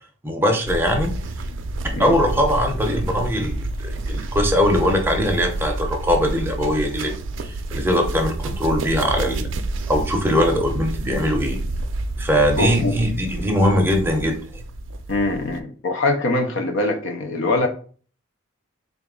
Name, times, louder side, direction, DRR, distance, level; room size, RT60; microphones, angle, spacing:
voice 1, 0.2-1.1 2.0-9.5 9.9-11.6 12.2-14.6, equal, 10° right, 2 dB, 0.6 m, -21 dB
sound 1, 0.7-15.6, right 2 dB, 70° right, 0.4 m, -29 dB
voice 2, 12.6-12.9 15.1-17.7, left 2 dB, 70° left, 4 dB, 0.5 m, -23 dB
4.0 x 2.4 x 3.6 m, 0.41 s
head